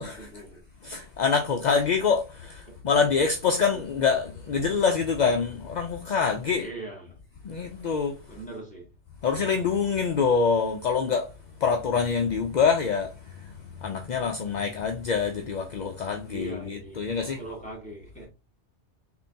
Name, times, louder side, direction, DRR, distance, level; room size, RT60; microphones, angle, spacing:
voice 1, 0.0-0.7 6.5-7.2 8.3-8.9 16.3-18.3, right 2 dB, 5° left, 1.7 m, -41 dB
voice 2, 0.8-6.7 7.4-8.1 9.2-11.3 11.6-13.1 13.8-17.4, left 5 dB, 55° left, 0.5 m, -25 dB
4.4 x 3.3 x 2.7 m
omnidirectional pair, 1.2 m